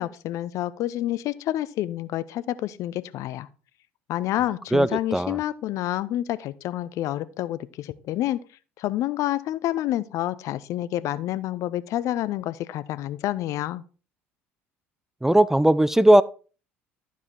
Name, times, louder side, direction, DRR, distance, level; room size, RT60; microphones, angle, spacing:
voice 1, 0.0-3.5 4.1-8.4 8.8-13.8, left 13 dB, 50° left, 0.5 m, -28 dB
voice 2, 4.7-5.4 15.2-16.2, right 1 dB, 5° right, 0.3 m, -18 dB
12.0 x 4.7 x 4.3 m
figure-of-eight pair, 60°, 7 cm